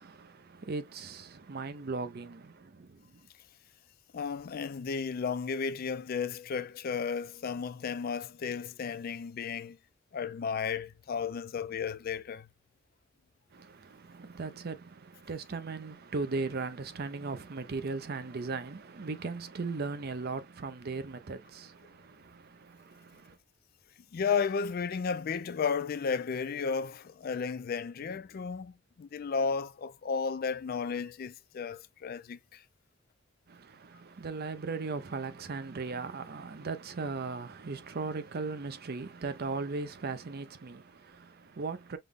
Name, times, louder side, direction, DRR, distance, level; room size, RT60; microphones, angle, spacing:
voice 1, 0.0-3.1 13.5-23.4 33.5-42.0, right 4 dB, 50° right, 0.6 m, -38 dB
voice 2, 4.1-9.8 10.1-12.5 24.1-32.6, left 5 dB, 50° left, 0.4 m, -33 dB
5.4 x 2.2 x 3.5 m
head